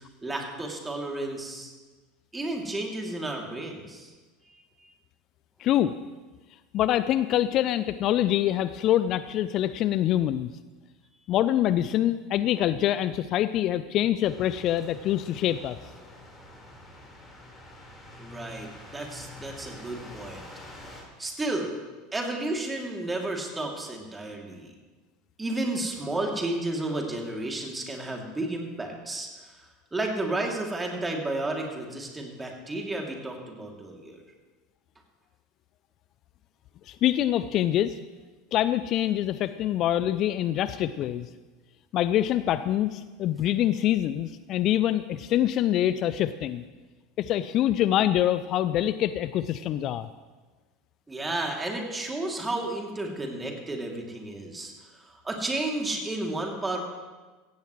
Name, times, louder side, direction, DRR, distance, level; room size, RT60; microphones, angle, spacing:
voice 1, 0.0-1.7 2.3-4.1 18.2-20.4 21.2-21.7 22.1-24.7 25.4-34.2 51.1-56.8, right 2 dB, 15° right, 1 dB, 2.8 m, -32 dB
voice 2, 5.6-5.9 6.7-10.5 11.3-15.8 36.9-38.0 38.5-41.3 41.9-46.6 47.2-50.1, left 12 dB, 45° left, 14 dB, 0.4 m, -25 dB
sound 1, 14.2-21.0, left 1 dB, 15° left, 4.3 m, -46 dB
16.5 x 15.5 x 3.2 m, 1.3 s
figure-of-eight pair, 75°, 0 cm